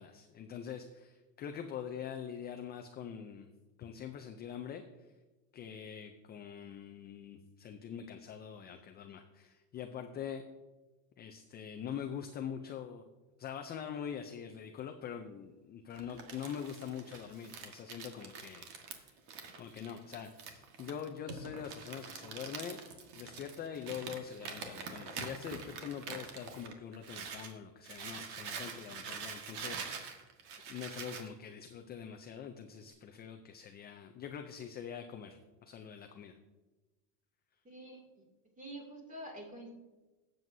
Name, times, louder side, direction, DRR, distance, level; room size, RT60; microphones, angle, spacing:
voice 1, 0.0-3.5 3.8-5.1 5.5-10.4 11.2-13.0 13.4-19.1 19.6-22.8 23.2-30.3 30.7-36.4, left 8 dB, 20° left, 5 dB, 0.4 m, -44 dB
Crumpling crinkling, 15.9-27.5 27.8-31.3, right 5 dB, 55° right, 1.7 m, -45 dB
voice 2, 37.6-38.3 38.6-39.7, right 1 dB, 15° right, 0 dB, 2.6 m, -47 dB
16.5 x 7.8 x 2.7 m, 1.2 s
supercardioid pair, 135°, 49 cm